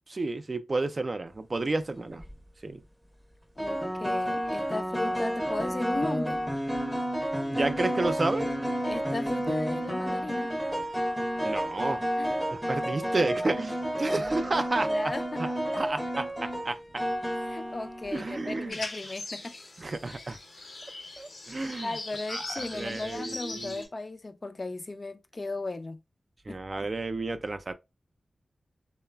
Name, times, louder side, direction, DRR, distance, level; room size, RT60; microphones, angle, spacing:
voice 1, 0.1-2.2 2.6-2.8 7.5-8.5 11.4-12.0 12.5-15.1 15.4-16.8 18.1-18.8 19.8-20.4 21.2-22.0 22.3-23.8 26.5-27.7, right 2 dB, 50° right, 0.3 m, -31 dB
sound 1, 2.0-2.3 3.6-18.4, equal, ahead, 0.6 m, -31 dB
voice 2, 3.6-6.5 8.8-10.5 12.2-12.3 12.9-13.6 14.0-14.3 14.7-15.4 15.7-15.8 17.5-19.6 21.8-26.0 26.5-26.6, left 2 dB, 45° left, 0.4 m, -36 dB
sound 2, 18.7-23.9, left 2 dB, 85° left, 0.9 m, -40 dB
3.0 x 2.0 x 2.2 m
cardioid pair, 45°, 0 cm